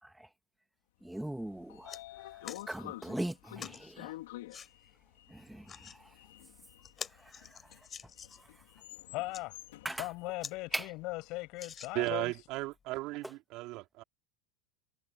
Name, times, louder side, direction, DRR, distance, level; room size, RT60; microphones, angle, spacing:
voice 1, 1.0-1.9 2.7-4.1 5.3-5.6 9.8-10.0 10.7-10.8, right 1 dB, 5° right, 1.4 m, -38 dB
sound 1, 1.2-1.3 1.6-2.0 2.4-2.7 3.6-3.8 4.5-4.7 5.5-6.0 6.4-6.5 6.8-8.5 9.1-9.4 10.0-10.1 10.4-10.6 10.9-11.0 11.5-12.3 12.9-13.0, left 7 dB, 25° left, 6.9 m, -46 dB
Sliding door, 1.3-11.4, left 17 dB, 80° left, 2.9 m, -50 dB
voice 2, 9.1-9.6 10.0-12.3, left 22 dB, 55° left, 7.5 m, -39 dB
voice 3, 11.9-14.0, right 20 dB, 55° right, 3.7 m, -35 dB
supercardioid pair, 125°, 0 cm